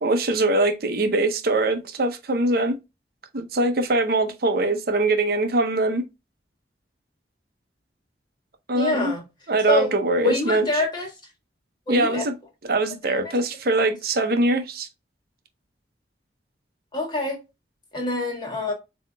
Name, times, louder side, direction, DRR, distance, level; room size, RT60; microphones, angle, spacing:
voice 1, 0.0-2.8 3.3-6.0 8.7-9.1 9.5-10.8 11.9-12.3 12.6-14.9, right 2 dB, 55° right, 0.7 m, -22 dB
voice 2, 8.7-9.2 9.7-9.9 10.2-11.1 11.9-12.3 13.1-13.3 16.9-17.4 17.9-18.7, left 2 dB, 25° left, 1.8 m, -25 dB
7.6 x 2.8 x 2.2 m
head